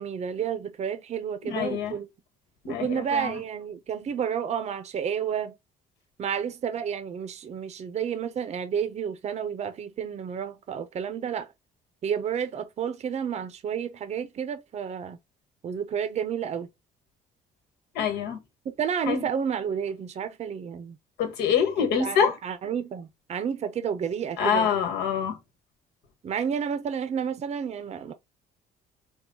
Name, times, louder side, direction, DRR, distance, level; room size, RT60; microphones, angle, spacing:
voice 1, 0.0-2.1 2.7-5.5 6.2-11.5 12.0-15.2 15.6-16.7 18.8-21.0 21.8-24.7 26.2-28.1, right 7 dB, 40° right, 0.6 m, -31 dB
voice 2, 1.4-2.0 2.6-3.4 17.9-18.4 19.1-19.2 21.2-22.3 24.4-25.4, left 7 dB, 80° left, 1.3 m, -25 dB
4.5 x 2.0 x 3.9 m
cardioid pair, 110°, 17 cm